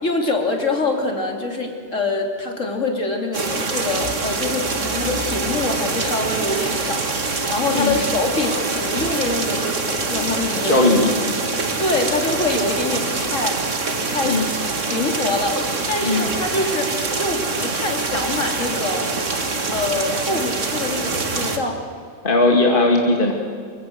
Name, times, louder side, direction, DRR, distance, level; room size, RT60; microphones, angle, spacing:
voice 1, 0.0-10.9 11.8-13.6 14.0-14.4 14.9-19.1 19.7-21.8, left 2 dB, 50° left, 3 dB, 3.2 m, -25 dB
sound 1, 3.3-21.6, right 3 dB, 50° right, 2.2 m, -25 dB
voice 2, 10.6-11.1 11.6-11.8 14.2-14.5 16.0-16.3 22.2-23.3, left 2 dB, 35° left, 1 dB, 2.2 m, -18 dB
24.5 x 22.5 x 7.9 m, 2.1 s
omnidirectional pair, 1.7 m